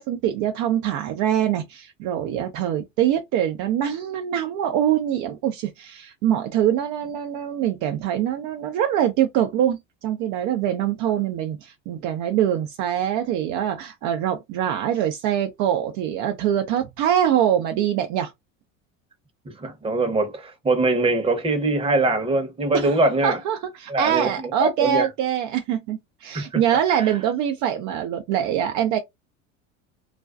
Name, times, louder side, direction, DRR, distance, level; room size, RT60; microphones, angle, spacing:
voice 1, 0.0-18.3 22.7-22.9 23.2-29.0, right 10 dB, 50° right, 0.6 m, -24 dB
voice 2, 19.4-23.4 23.9-25.1 26.3-26.6 26.9-27.2, right 2 dB, 15° right, 0.9 m, -23 dB
2.4 x 2.2 x 2.3 m
hypercardioid pair, 85°, 39 cm